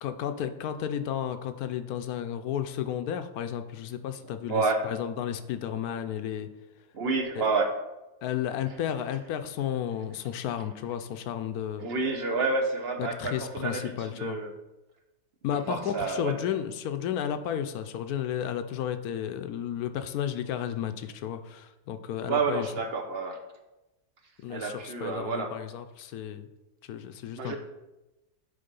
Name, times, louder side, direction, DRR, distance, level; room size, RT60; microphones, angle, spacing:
voice 1, 0.0-6.5 7.3-7.5 8.2-11.9 13.0-14.4 15.4-22.7 24.4-26.5 26.8-27.6, left 9 dB, 75° left, 9 dB, 1.1 m, -33 dB
voice 2, 4.5-4.8 6.9-7.7 11.8-14.5 15.7-16.3 22.3-23.4 24.5-25.5 27.4-27.6, right 4 dB, 45° right, 4 dB, 1.0 m, -29 dB
9.5 x 3.6 x 5.3 m, 1.0 s
omnidirectional pair, 1.6 m